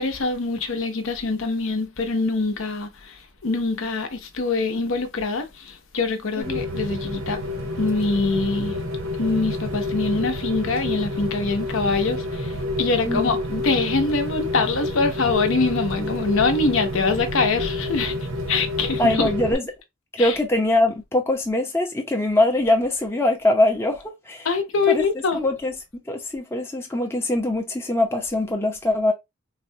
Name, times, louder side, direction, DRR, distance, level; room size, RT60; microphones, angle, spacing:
voice 1, 0.0-7.4 7.8-8.8 9.2-18.2 18.5-19.3 20.2-20.4 24.4-25.4, left 3 dB, 65° left, 0.6 m, -24 dB
Rain, 6.4-19.5, left 2 dB, 65° right, 0.9 m, -28 dB
voice 2, 13.0-13.4 19.0-19.6 20.2-24.5 24.9-25.0 25.3-25.7 26.1-29.1, left 1 dB, 10° left, 0.6 m, -22 dB
4.0 x 2.2 x 2.7 m
head